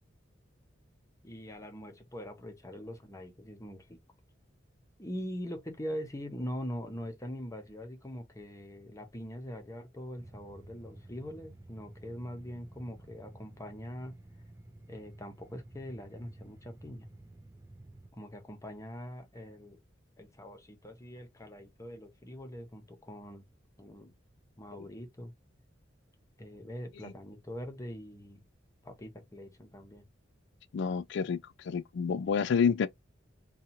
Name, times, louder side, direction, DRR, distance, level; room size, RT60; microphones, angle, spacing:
voice 1, 1.2-4.0 5.0-14.2 14.9-17.1 18.1-19.8 20.2-23.4 23.8-24.1 24.6-25.3 26.4-28.4 28.8-30.1, equal, 15° left, 0.7 m, -42 dB
sound 1, 10.2-18.1, right 1 dB, 15° right, 0.4 m, -52 dB
voice 2, 30.7-31.4 31.7-32.9, left 6 dB, 65° left, 0.3 m, -28 dB
2.8 x 2.3 x 2.7 m
head